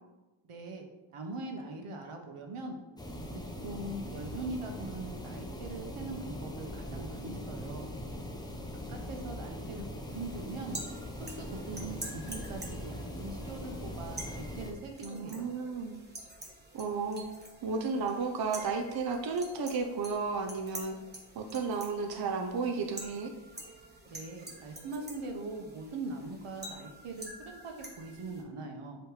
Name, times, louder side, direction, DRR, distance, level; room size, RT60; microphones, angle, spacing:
voice 1, 0.5-0.8 1.1-2.8 3.6-7.9 8.9-10.8 11.3-15.5 24.1-27.3 27.6-29.0, right 2 dB, 85° right, 3 dB, 1.2 m, -41 dB
sound 1, 3.0-14.7, left 1 dB, 10° left, 0.8 m, -41 dB
sound 2, 10.0-28.4, right 1 dB, 20° right, 1.2 m, -48 dB
voice 2, 11.7-12.1 15.0-16.0 16.7-17.3 17.6-21.0 21.3-23.3, right 4 dB, 50° right, 4 dB, 0.7 m, -33 dB
8.0 x 3.3 x 4.9 m, 1.1 s
wide cardioid pair, 130°, 49 cm